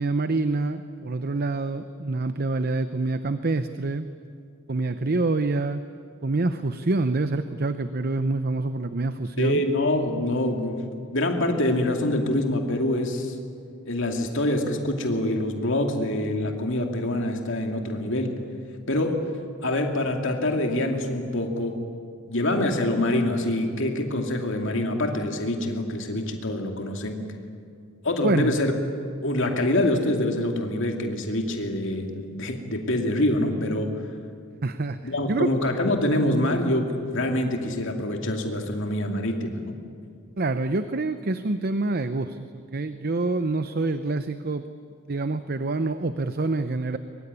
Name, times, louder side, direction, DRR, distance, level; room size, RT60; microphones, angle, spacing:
voice 1, 0.0-4.1 4.7-5.8 6.2-9.6 28.2-28.5 34.6-35.5 40.4-44.6 45.1-47.0, right 2 dB, 45° right, 10 dB, 0.7 m, -26 dB
voice 2, 9.4-10.8 11.1-13.3 13.9-18.4 18.9-19.3 19.6-21.8 22.3-27.2 28.0-28.7 29.2-33.9 35.0-39.6, left 1 dB, 60° left, 3 dB, 2.7 m, -25 dB
23.0 x 23.0 x 9.8 m, 2.3 s
head